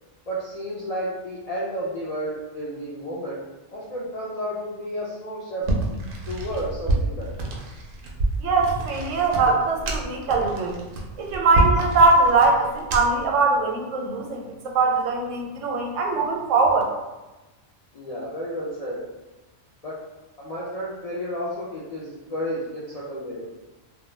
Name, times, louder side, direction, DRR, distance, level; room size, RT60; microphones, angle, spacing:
voice 1, 0.3-3.4 3.7-5.6 6.3-7.5 17.9-19.0 19.8-20.0 20.4-23.5, equal, 65° left, -7 dB, 0.3 m, -32 dB
sound 1, 5.6-13.3, right 2 dB, 60° right, 0.6 m, -28 dB
voice 2, 8.4-10.8 11.2-16.8, right 3 dB, 85° right, 0 dB, 0.9 m, -21 dB
2.2 x 2.2 x 3.1 m, 1.1 s
omnidirectional pair, 1.2 m